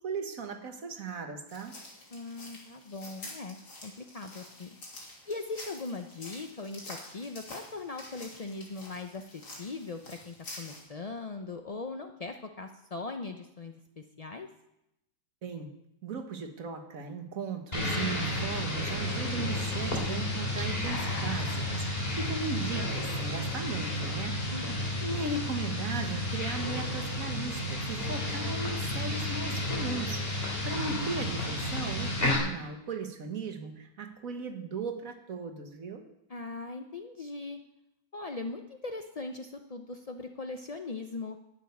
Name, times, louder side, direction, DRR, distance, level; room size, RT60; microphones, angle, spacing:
voice 1, 0.0-1.7 15.4-15.7 16.0-24.4 25.0-36.0, right 4 dB, 55° right, 5 dB, 1.8 m, -37 dB
sound 1, 1.5-10.8, left 2 dB, 70° left, 3.4 m, -48 dB
voice 2, 2.1-4.8 5.3-14.5 24.5-25.0 36.3-37.6 38.1-41.4, left 3 dB, 55° left, 5 dB, 0.4 m, -40 dB
sound 2, 17.7-32.3, left 1 dB, 35° left, 3.4 m, -32 dB
11.5 x 8.2 x 9.4 m, 0.85 s
omnidirectional pair, 1.8 m